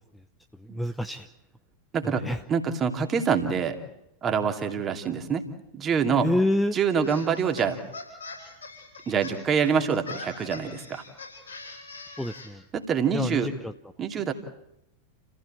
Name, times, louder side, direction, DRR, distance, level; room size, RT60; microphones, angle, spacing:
voice 1, 0.6-1.3 2.0-2.4 6.2-6.8 12.2-12.6 13.1-13.7, left 1 dB, 5° left, 8 dB, 0.9 m, -27 dB
voice 2, 1.9-2.2 2.5-3.8 4.2-5.5 5.7-6.3 6.7-7.8 9.1-11.0 12.7-13.5 14.0-14.3, right 6 dB, 25° right, 5 dB, 2.7 m, -25 dB
sound 1, 7.0-12.5, left 3 dB, 75° left, 7.4 m, -43 dB
29.5 x 15.5 x 8.9 m, 0.85 s
figure-of-eight pair, 90°, 0 cm